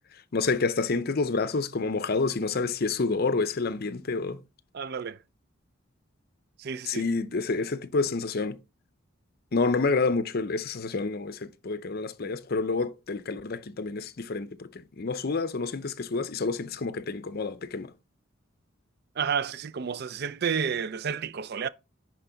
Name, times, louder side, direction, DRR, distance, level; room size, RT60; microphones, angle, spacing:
voice 1, 0.3-4.4 6.9-8.6 9.5-17.9, left 4 dB, 50° left, 0.6 m, -28 dB
voice 2, 4.7-5.2 6.6-7.1 19.2-21.7, right 7 dB, 55° right, 0.5 m, -31 dB
10.0 x 4.5 x 3.9 m
head